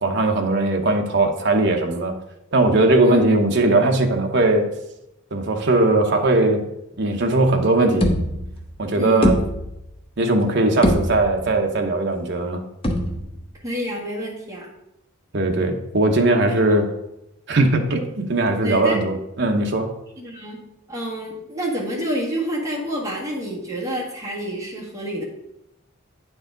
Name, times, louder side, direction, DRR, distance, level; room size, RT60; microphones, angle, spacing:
voice 1, 0.0-2.2 2.5-4.7 5.3-6.6 7.0-8.1 8.8-9.3 10.2-12.6 15.3-16.9 17.5-19.9, right 2 dB, 50° right, 4 dB, 0.8 m, -19 dB
sound 1, 8.0-8.8 9.2-10.0 10.4-10.5 10.8-11.6 12.8-13.5, equal, 25° left, 0.8 m, -23 dB
voice 2, 8.9-9.3 13.6-14.7 18.6-19.0 20.2-20.6 20.9-25.2, right 1 dB, 15° right, -5 dB, 1.8 m, -28 dB
8.9 x 4.8 x 3.8 m, 0.87 s
head